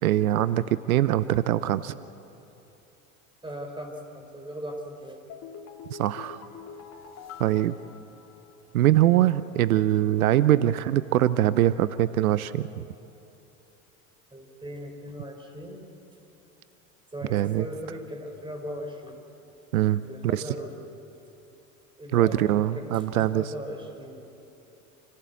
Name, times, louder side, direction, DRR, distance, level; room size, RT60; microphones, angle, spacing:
voice 1, 0.0-1.9 5.9-6.4 7.4-7.8 8.7-12.8 17.3-17.7 19.7-20.0 20.3-20.5 22.1-23.5, right 13 dB, 85° right, 16 dB, 0.6 m, -23 dB
voice 2, 3.4-5.2 14.3-15.9 17.1-19.2 20.0-20.9 22.0-24.2, equal, 10° right, 4 dB, 4.6 m, -38 dB
sound 1, 5.3-8.7 9.0-9.1, left 6 dB, 40° left, 2.9 m, -45 dB
27.5 x 16.0 x 8.3 m, 2.9 s
hypercardioid pair, 85°, 41 cm